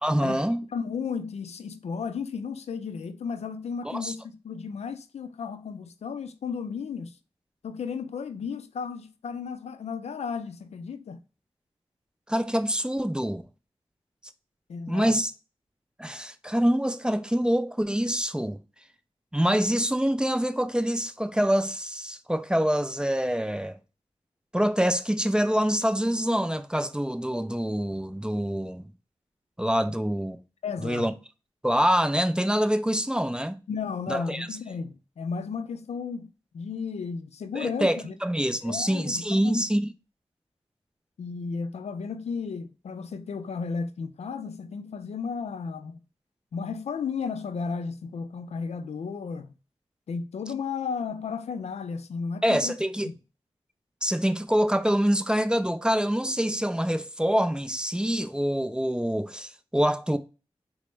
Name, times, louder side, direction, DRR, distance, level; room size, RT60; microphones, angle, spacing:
voice 1, 0.0-0.6 3.9-4.1 12.3-13.4 14.9-15.3 16.0-18.6 19.3-23.8 24.5-28.9 29.6-30.4 30.8-31.1 31.6-33.6 34.1-34.5 37.5-39.9 52.4-53.1 54.0-60.2, equal, 10° right, 0.4 m, -25 dB
voice 2, 0.7-7.1 7.6-11.2 14.7-15.2 30.6-31.1 33.7-36.3 36.5-38.1 38.6-39.7 41.2-46.0 46.5-49.5 50.1-52.7 53.0-53.1, left 5 dB, 80° left, 0.4 m, -34 dB
4.2 x 2.0 x 3.0 m
cardioid pair, 45°, 11 cm